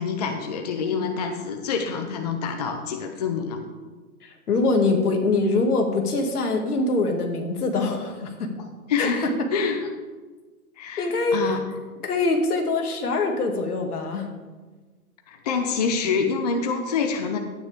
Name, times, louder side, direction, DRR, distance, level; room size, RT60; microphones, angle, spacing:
voice 1, 0.0-3.6 8.9-9.9 10.8-11.6 15.3-17.4, left 5 dB, 30° left, 5 dB, 0.6 m, -26 dB
voice 2, 4.2-8.5 9.0-9.5 11.0-11.4 12.0-14.3, left 3 dB, 80° left, 4 dB, 2.1 m, -24 dB
12.5 x 9.3 x 3.6 m, 1.3 s
hypercardioid pair, 160°, 45 cm